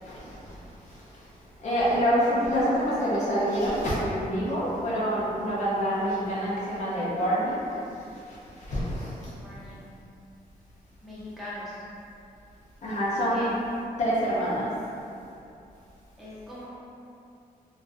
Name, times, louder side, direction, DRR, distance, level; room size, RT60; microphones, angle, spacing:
voice 1, 0.0-0.4 1.6-7.6 8.7-9.1 12.8-13.4 14.0-14.7, equal, 50° left, -8 dB, 0.5 m, -26 dB
voice 2, 2.2-2.6 9.4-9.9 11.0-11.8 13.3-13.5 16.2-16.7, left 1 dB, ahead, -10 dB, 0.6 m, -41 dB
2.4 x 2.3 x 2.4 m, 2.7 s
wide cardioid pair, 135°, 16 cm